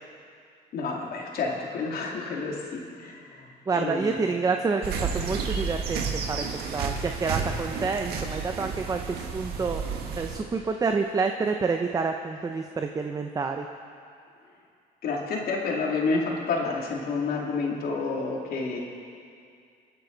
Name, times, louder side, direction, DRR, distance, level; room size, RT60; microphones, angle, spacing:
voice 1, 0.7-4.3 15.0-18.8, left 4 dB, 65° left, -1 dB, 2.6 m, -29 dB
voice 2, 3.7-9.8 10.2-13.7, right 4 dB, 20° right, 5 dB, 0.7 m, -28 dB
sound 1, 4.8-10.4, right 5 dB, 70° right, 1.7 m, -31 dB
27.0 x 9.5 x 4.0 m, 2.4 s
cardioid pair, 110°, 17 cm